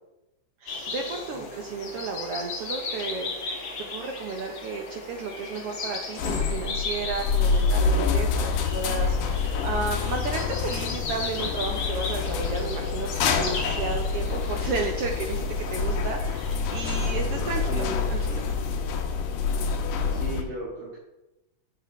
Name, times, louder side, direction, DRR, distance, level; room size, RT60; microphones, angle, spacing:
voice 1, 0.6-3.6 3.9-15.4 15.7-18.5, right 4 dB, 70° right, 3 dB, 1.4 m, -33 dB
sound 1, 0.7-18.5, left 3 dB, 45° left, 1.9 m, -37 dB
sound 2, 6.2-20.4, left 5 dB, 85° left, 2.4 m, -27 dB
voice 2, 17.7-18.1 20.1-21.0, equal, 40° right, -8 dB, 3.0 m, -36 dB
12.0 x 8.2 x 3.1 m, 0.98 s
omnidirectional pair, 3.5 m